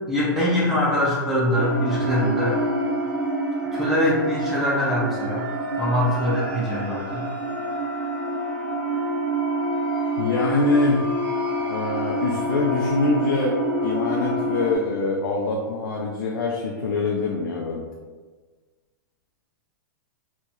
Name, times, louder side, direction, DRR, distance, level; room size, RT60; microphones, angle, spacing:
voice 1, 0.1-2.6 3.7-5.5 5.8-7.2, left 1 dB, ahead, -8 dB, 0.6 m, -23 dB
sound 1, 1.5-14.8, right 1 dB, 40° right, 0.5 m, -27 dB
voice 2, 10.2-11.0 11.7-17.8, left 3 dB, 75° left, -1 dB, 0.4 m, -24 dB
2.3 x 2.1 x 2.7 m, 1.4 s
hypercardioid pair, 120°, 12 cm